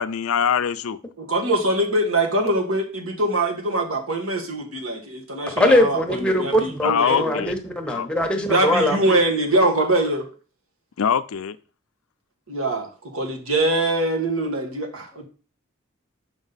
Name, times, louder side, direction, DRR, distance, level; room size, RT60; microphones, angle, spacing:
voice 1, 0.0-1.0 6.8-7.5 7.9-8.1 11.0-11.6, left 7 dB, 80° left, 13 dB, 0.5 m, -23 dB
voice 2, 1.2-7.3 8.5-10.3 12.5-15.3, right 1 dB, 75° right, 3 dB, 1.6 m, -23 dB
voice 3, 5.5-9.2, left 1 dB, 5° left, 2 dB, 1.0 m, -21 dB
7.2 x 5.2 x 4.1 m, 0.37 s
head